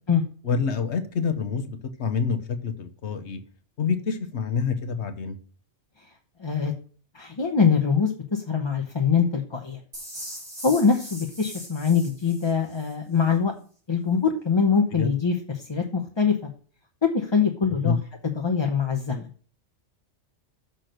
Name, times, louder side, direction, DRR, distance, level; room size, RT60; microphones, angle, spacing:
voice 1, 0.4-3.4 3.8-5.4 15.0-15.1 17.8-18.0, left 5 dB, 70° left, 1.2 m, -27 dB
voice 2, 6.4-6.7 7.1-9.8 10.6-13.5 13.9-16.3 17.0-18.0 18.2-19.3, left 6 dB, 25° left, 0.9 m, -23 dB
sound 1, 9.9-12.9, equal, 55° right, 3.8 m, -40 dB
6.7 x 6.0 x 6.5 m
omnidirectional pair, 1.2 m